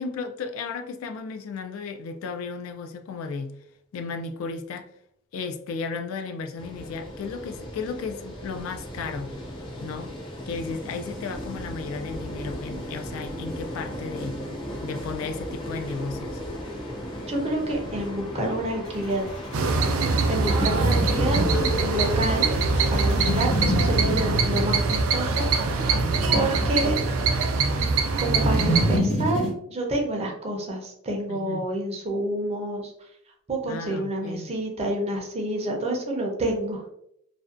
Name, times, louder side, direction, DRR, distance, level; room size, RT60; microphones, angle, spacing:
voice 1, 0.0-3.5 3.9-4.9 5.3-9.3 9.8-10.1 10.5-14.4 14.8-16.4 31.3-31.7 33.7-34.5, left 4 dB, 75° left, 0.3 m, -34 dB
sound 1, 6.6-23.9, equal, 25° left, 0.6 m, -37 dB
voice 2, 17.3-19.3 19.9-21.5 21.8-22.5 22.9-26.1 26.3-27.1 27.7-32.9 33.5-36.9, right 1 dB, 30° right, 0.5 m, -28 dB
sound 2, 18.8-29.5, equal, 55° left, 1.2 m, -29 dB
sound 3, 19.5-29.0, right 4 dB, 85° right, 0.4 m, -23 dB
2.5 x 2.1 x 2.4 m
head